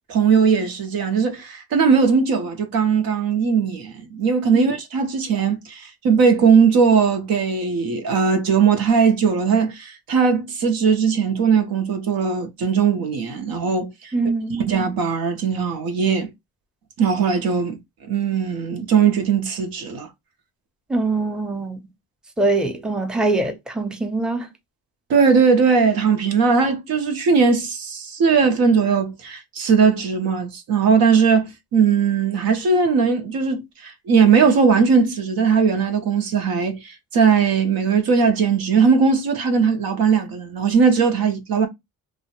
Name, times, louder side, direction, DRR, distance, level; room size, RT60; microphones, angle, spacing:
voice 1, 0.1-14.1 14.7-16.3 17.0-17.8 18.1-20.1 25.1-41.7, right 5 dB, 80° right, 0.7 m, -19 dB
voice 2, 14.1-14.7 20.9-21.9 22.4-24.5, right 2 dB, ahead, 0.5 m, -23 dB
2.6 x 2.0 x 2.8 m
cardioid pair, 80°, 35 cm